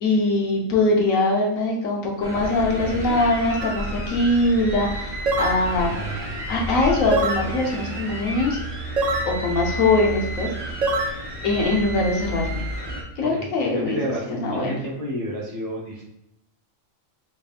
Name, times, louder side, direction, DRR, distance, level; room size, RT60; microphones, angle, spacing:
voice 1, 0.0-5.9 6.5-8.6 9.3-10.5 11.4-12.6 13.2-14.0 14.3-14.8, left 2 dB, 80° left, 0 dB, 1.3 m, -22 dB
sound 1, 2.2-13.0, equal, 25° right, 0.7 m, -31 dB
sound 2, 3.6-3.8 5.3-5.6 7.1-7.5 9.0-9.3 10.8-11.1, right 2 dB, 70° right, 0.4 m, -23 dB
voice 2, 13.3-16.1, equal, 35° left, -7 dB, 0.7 m, -30 dB
3.8 x 3.5 x 2.4 m, 0.82 s
omnidirectional pair, 1.4 m